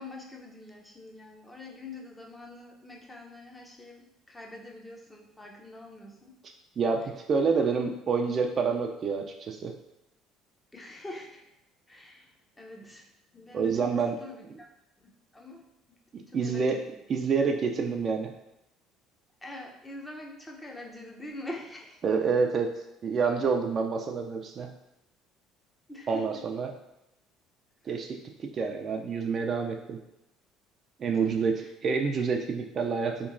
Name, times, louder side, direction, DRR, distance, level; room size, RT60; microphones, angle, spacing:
voice 1, 0.0-6.4 10.7-11.4 11.9-13.1 13.3-14.7 15.0-15.6 16.3-17.0 19.4-22.0 25.9-26.4 27.8-27.9 31.1-31.7, left 2 dB, 15° left, 0 dB, 0.6 m, -45 dB
voice 2, 6.8-9.7 13.5-14.1 16.3-16.8 17.1-18.3 22.0-22.7 23.0-24.7 26.1-26.7 27.9-30.0 31.0-31.5 31.8-33.3, right 5 dB, 40° right, 3 dB, 0.3 m, -28 dB
3.5 x 3.0 x 2.5 m, 0.88 s
cardioid pair, 105°, 0 cm